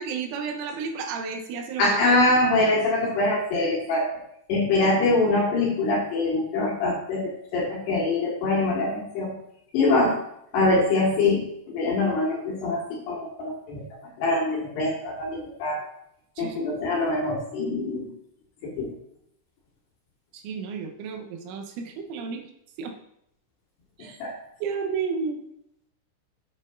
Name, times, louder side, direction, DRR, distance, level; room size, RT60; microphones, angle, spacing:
voice 1, 0.0-2.0 16.4-16.6 20.3-22.4 22.8-22.9 24.0-24.2 24.6-25.4, right 5 dB, 75° right, 4 dB, 3.3 m, -32 dB
voice 2, 1.8-4.1 4.5-9.3 9.7-10.2 10.5-11.4 11.7-13.8 14.2-15.8 16.4-18.1 18.6-18.9 24.0-24.3, left 2 dB, 65° left, -4 dB, 3.4 m, -24 dB
11.5 x 8.8 x 2.6 m, 0.75 s
omnidirectional pair, 5.9 m